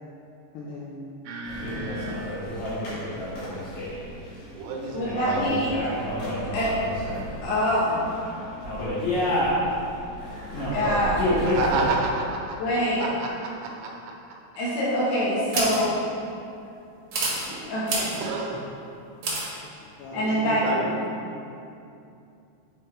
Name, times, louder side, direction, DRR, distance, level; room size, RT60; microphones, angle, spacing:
voice 1, 0.5-1.0 19.3-19.4 19.8-20.9 21.4-21.5, left 2 dB, 90° left, -5 dB, 2.4 m, -39 dB
voice 2, 1.2-2.2 4.5-5.6 10.6-11.0 11.5-12.6 13.0-14.1 18.2-18.6 20.1-21.0, right 3 dB, 80° right, -1 dB, 3.1 m, -31 dB
sound 1, 1.4-11.9, left 1 dB, 55° left, 2.2 m, -30 dB
voice 3, 4.9-5.7 6.5-6.7 7.4-8.0 10.7-11.2 12.6-13.1 14.6-16.0 17.5-18.2 20.1-20.9, equal, 70° left, -7 dB, 3.6 m, -25 dB
sound 2, 15.5-15.8 17.1-17.5 17.9-18.2 19.2-19.5, right 2 dB, 65° right, 1.9 m, -27 dB
9.0 x 4.8 x 3.2 m, 2.6 s
omnidirectional pair, 5.7 m